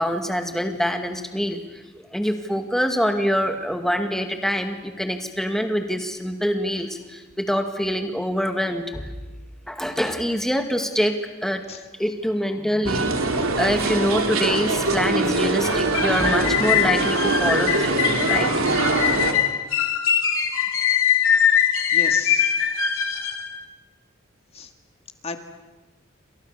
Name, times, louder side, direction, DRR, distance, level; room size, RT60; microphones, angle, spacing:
voice 1, 0.0-1.8 2.1-9.1 9.7-11.6 12.0-13.1 13.6-18.5 19.1-19.2, equal, ahead, 5 dB, 2.1 m, -25 dB
sound 1, 12.9-19.3, right 2 dB, 90° right, 3.1 m, -23 dB
sound 2, 15.6-23.5, left 8 dB, 85° left, 3.0 m, -22 dB
voice 2, 21.9-22.5 24.5-24.7 25.2-25.4, left 4 dB, 30° left, 6 dB, 1.9 m, -34 dB
29.0 x 26.5 x 6.9 m, 1.2 s
head